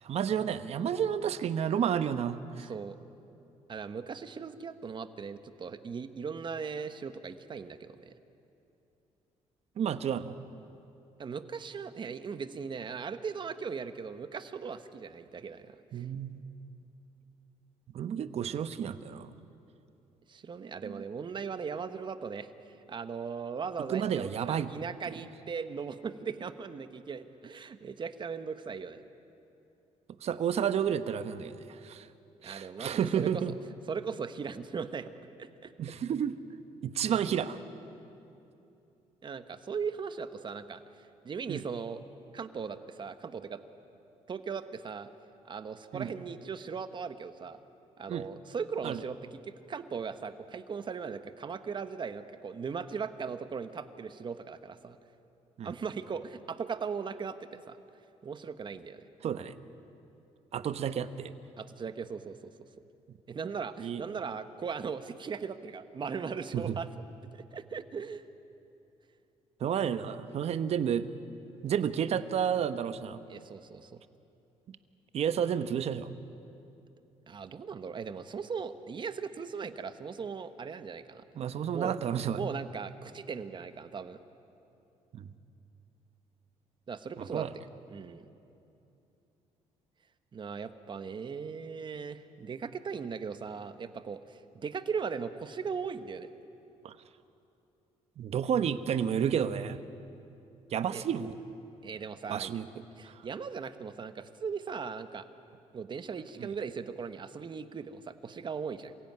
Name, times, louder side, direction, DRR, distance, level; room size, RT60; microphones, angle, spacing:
voice 1, 0.0-2.7 9.8-10.4 15.9-16.4 17.9-19.3 20.8-21.0 23.9-24.7 30.2-32.1 32.4-33.5 35.8-36.3 36.8-37.6 41.5-41.6 45.9-46.1 48.1-48.3 48.8-49.0 55.6-55.7 59.2-59.5 60.5-61.3 63.8-64.0 66.5-66.8 69.6-71.1 71.6-73.2 75.1-76.1 81.3-82.4 85.1-85.3 87.2-87.5 96.8-96.9 98.2-99.8 100.7-101.4 102.3-102.7 103.1-103.2 106.4-106.5, right 8 dB, 60° right, 12 dB, 1.0 m, -31 dB
voice 2, 2.6-3.0 3.7-8.1 11.2-16.0 20.3-22.5 22.9-29.0 32.4-33.3 33.9-35.1 35.4-35.7 39.2-40.8 41.2-42.0 42.3-43.6 44.3-45.1 45.4-47.6 48.0-55.0 55.6-57.8 58.2-59.0 61.6-62.5 63.3-66.9 67.3-68.2 73.3-74.0 77.3-81.2 81.7-82.0 82.3-84.2 86.9-87.5 87.9-88.3 90.3-96.3 100.9-101.0 101.8-102.6 103.0-105.3 105.7-108.9, right 6 dB, 40° right, 10 dB, 1.3 m, -38 dB
26.5 x 16.5 x 9.5 m, 2.8 s
cardioid pair, 90°, 12 cm